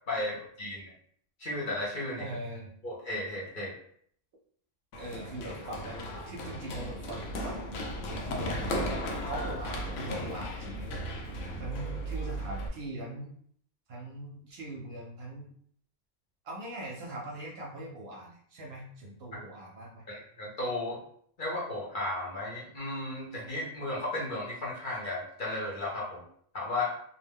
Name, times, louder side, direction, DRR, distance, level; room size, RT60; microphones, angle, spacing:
voice 1, 0.1-0.9 1.4-2.3 2.8-3.7 20.1-21.0 21.4-26.2 26.5-26.9, left 2 dB, 50° left, -4 dB, 0.7 m, -34 dB
voice 2, 2.2-2.7 5.0-8.9 9.3-11.1 11.6-13.3 13.9-15.5 16.4-20.0, right 1 dB, 65° right, -1 dB, 0.7 m, -41 dB
Run, 4.9-12.7, equal, 75° left, 0.9 m, -36 dB
2.5 x 2.1 x 3.4 m, 0.62 s
omnidirectional pair, 1.3 m